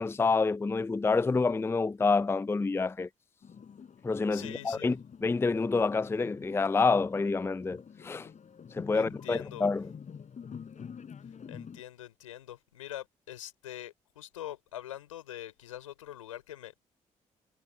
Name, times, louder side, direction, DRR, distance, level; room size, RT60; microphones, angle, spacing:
voice 1, 0.0-3.1 4.0-5.0 5.2-8.3 8.7-9.9, left 4 dB, 15° left, 0.4 m, -28 dB
sound 1, 3.4-11.8, left 7 dB, 50° left, 4.3 m, -47 dB
voice 2, 4.3-5.0 8.9-9.7 11.5-16.8, left 12 dB, 85° left, 4.4 m, -44 dB
hypercardioid pair, 40°, 16 cm